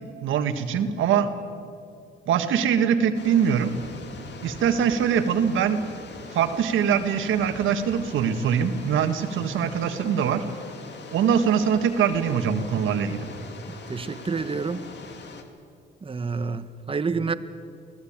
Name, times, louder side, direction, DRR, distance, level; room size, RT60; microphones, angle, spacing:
voice 1, 0.2-1.3 2.3-3.7 4.4-5.8 6.3-10.4 11.1-13.3, right 7 dB, 80° right, 8 dB, 1.7 m, -23 dB
sound 1, 3.1-15.4, left 4 dB, 60° left, 2.5 m, -42 dB
voice 2, 13.7-14.8 16.0-17.3, right 4 dB, 25° right, 11 dB, 1.2 m, -29 dB
24.0 x 16.5 x 8.8 m, 2.3 s
cardioid pair, 90°, 20 cm